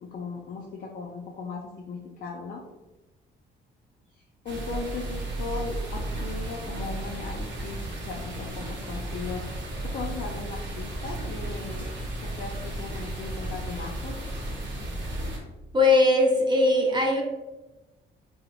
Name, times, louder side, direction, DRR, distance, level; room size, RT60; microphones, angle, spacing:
voice 1, 0.0-2.6 4.4-11.9 12.2-14.3, left 4 dB, 50° left, -1 dB, 0.4 m, -37 dB
sound 1, 4.5-15.4, right 1 dB, 65° right, 0.8 m, -34 dB
voice 2, 15.7-17.2, left 2 dB, 20° right, 0 dB, 0.5 m, -20 dB
2.8 x 2.0 x 2.8 m, 1.1 s
cardioid pair, 90°, 20 cm